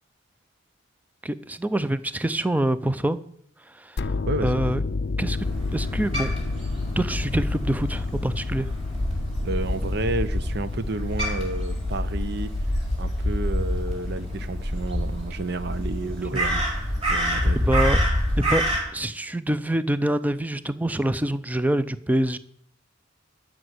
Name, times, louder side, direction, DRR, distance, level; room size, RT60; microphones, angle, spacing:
voice 1, 1.2-3.2 3.8-4.0 4.4-4.8 5.2-5.4 5.7-6.3 7.0-8.7 17.5-18.0 18.4-22.4, right 1 dB, 10° right, 14 dB, 0.5 m, -25 dB
sound 1, 4.0-14.9, left 3 dB, 55° left, 0.5 m, -31 dB
voice 2, 4.2-4.6 9.4-12.5 13.0-16.7 17.1-17.7, right 2 dB, 55° right, 14 dB, 0.7 m, -31 dB
Crow, 5.4-18.8, equal, 30° right, 4.8 m, -27 dB
12.5 x 6.2 x 8.0 m, 0.68 s
head